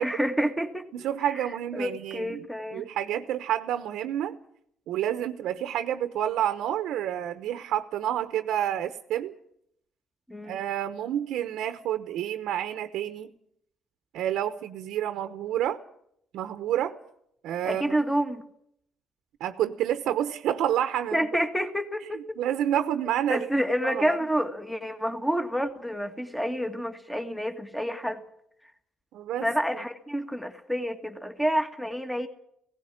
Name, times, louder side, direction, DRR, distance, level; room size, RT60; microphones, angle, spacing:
voice 1, 0.0-0.9 1.3-1.4 1.7-2.9 10.3-10.6 17.7-18.4 21.1-22.4 23.3-28.2 29.4-32.3, equal, 5° left, 7 dB, 1.8 m, -28 dB
voice 2, 0.9-4.4 4.9-9.3 10.4-13.3 14.1-15.8 16.3-16.9 17.4-18.0 19.4-21.2 22.1-23.5 23.8-24.2 29.1-29.5, right 11 dB, 85° right, 9 dB, 0.9 m, -29 dB
17.0 x 16.5 x 9.9 m, 0.74 s
cardioid pair, 90°, 0 cm